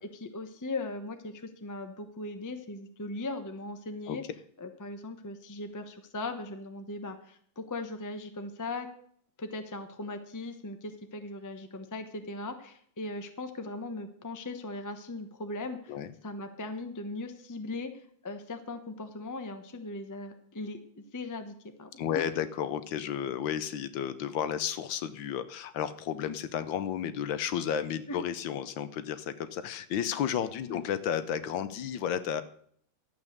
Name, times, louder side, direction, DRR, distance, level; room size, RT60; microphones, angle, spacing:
voice 1, 0.1-4.2 4.6-8.9 9.4-15.9 16.2-22.2 28.1-28.2 30.7-30.8, left 2 dB, 20° left, 7 dB, 0.5 m, -39 dB
voice 2, 22.0-32.4, left 9 dB, 70° left, 12 dB, 1.4 m, -32 dB
12.0 x 8.1 x 6.6 m, 0.63 s
omnidirectional pair, 2.3 m